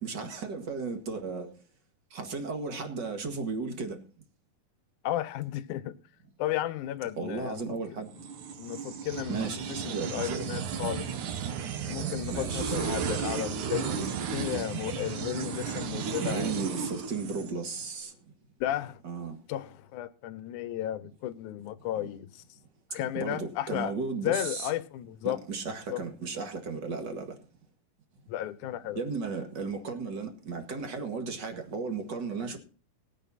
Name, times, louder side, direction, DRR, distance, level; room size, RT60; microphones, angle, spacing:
voice 1, 0.0-1.5 2.1-4.0 7.2-8.1 9.3-10.5 12.3-12.8 16.2-18.1 19.0-19.4 21.9-22.1 23.1-24.7 25.2-27.4 28.9-32.6, right 4 dB, 40° right, 2.0 m, -35 dB
voice 2, 5.0-5.9 6.4-7.6 8.6-11.1 11.9-14.1 14.3-16.5 18.6-19.0 19.5-22.3 22.9-23.9 24.2-25.4 25.9-26.0 28.3-29.0, left 13 dB, 70° left, 2.2 m, -33 dB
sound 1, 8.2-17.9, right 7 dB, 65° right, 2.7 m, -34 dB
19.5 x 9.3 x 4.2 m
omnidirectional pair, 4.0 m